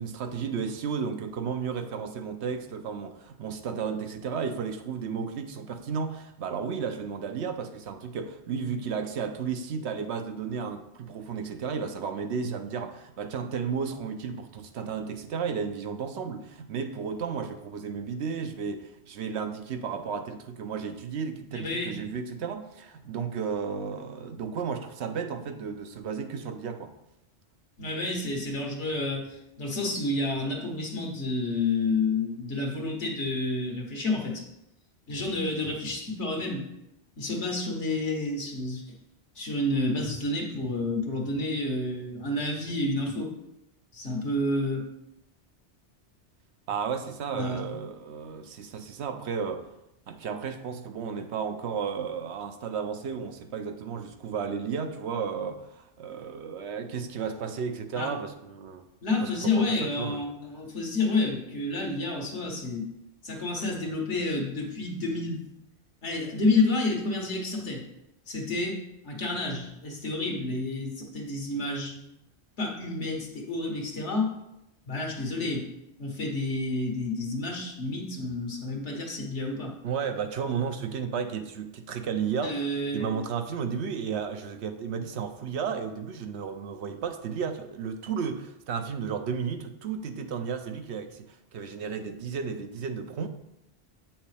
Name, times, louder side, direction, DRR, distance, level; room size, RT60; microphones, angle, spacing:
voice 1, 0.0-26.9 46.7-49.6 50.1-58.8 59.2-60.2 79.8-82.6 82.9-93.3, right 6 dB, 75° right, 8 dB, 0.9 m, -33 dB
voice 2, 21.5-21.9 27.8-34.4 35.1-36.6 37.2-38.8 39.4-43.3 43.9-44.8 47.3-47.6 57.9-58.1 59.0-62.9 63.2-65.5 66.0-67.8 68.3-68.8 69.0-72.1 72.6-74.3 74.9-75.6 76.0-79.7 82.4-83.1, left 2 dB, 75° left, 1 dB, 1.7 m, -29 dB
8.3 x 6.0 x 3.3 m, 0.87 s
omnidirectional pair, 1.2 m